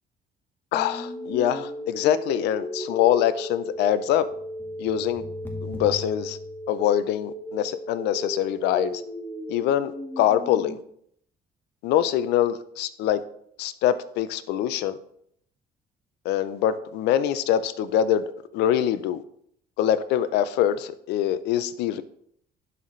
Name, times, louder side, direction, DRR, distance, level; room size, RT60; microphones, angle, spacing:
voice 1, 0.7-4.3 4.8-5.2 5.6-6.4 6.7-9.0 9.5-10.8 11.8-13.2 13.6-15.0 16.2-18.3 18.5-19.2 19.8-22.0, left 11 dB, 85° left, 14 dB, 0.5 m, -24 dB
sound 1, 0.7-10.7, equal, 10° left, 1.2 m, -35 dB
11.0 x 4.1 x 3.1 m, 0.68 s
cardioid pair, 110°, 17 cm